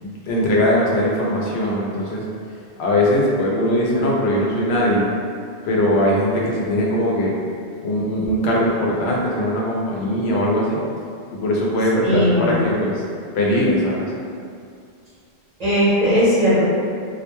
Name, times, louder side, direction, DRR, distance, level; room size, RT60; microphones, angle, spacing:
voice 1, 0.0-2.2 2.8-5.1 5.6-7.3 7.8-10.8 11.4-13.0 13.3-14.1, left 1 dB, 85° left, -4 dB, 0.9 m, -20 dB
voice 2, 12.0-12.6 15.6-16.7, equal, 40° right, -11 dB, 0.9 m, -17 dB
2.4 x 2.1 x 3.0 m, 2.4 s
omnidirectional pair, 1.0 m